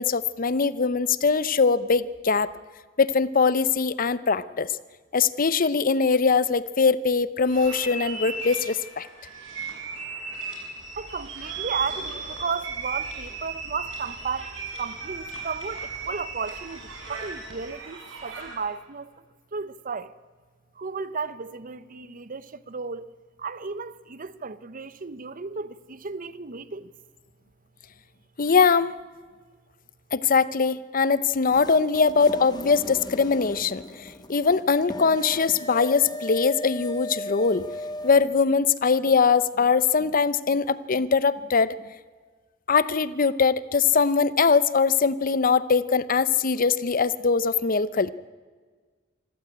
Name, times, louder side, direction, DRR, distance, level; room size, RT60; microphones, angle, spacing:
voice 1, 0.0-2.5 3.0-4.7 5.1-9.1 28.4-28.9 30.1-33.8 34.3-37.7 38.0-41.7 42.7-48.1, left 5 dB, 45° left, 0.7 m, -22 dB
sound 1, 7.5-18.7, right 4 dB, 75° right, 6.4 m, -36 dB
sound 2, 10.8-17.7, right 1 dB, 20° right, 6.5 m, -48 dB
voice 2, 11.0-14.5 14.8-19.1 19.5-20.1 20.8-23.1 23.4-26.9, right 5 dB, 45° right, 0.8 m, -34 dB
sound 3, 31.5-38.3, left 1 dB, 20° left, 1.8 m, -37 dB
25.0 x 14.0 x 8.8 m
head